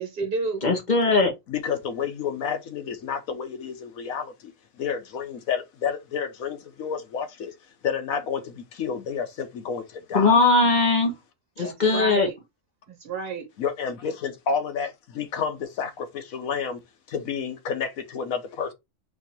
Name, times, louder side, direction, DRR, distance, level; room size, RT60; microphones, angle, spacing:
voice 1, 0.0-0.7 11.6-12.3 12.9-13.5, right 3 dB, 45° right, 1.4 m, -30 dB
voice 2, 0.6-1.3 10.1-11.1 11.6-12.3, left 3 dB, 35° left, 1.2 m, -19 dB
voice 3, 1.5-7.5 7.8-10.4 13.6-16.8 17.1-18.7, left 6 dB, 85° left, 1.3 m, -30 dB
4.3 x 2.8 x 4.3 m
omnidirectional pair, 1.4 m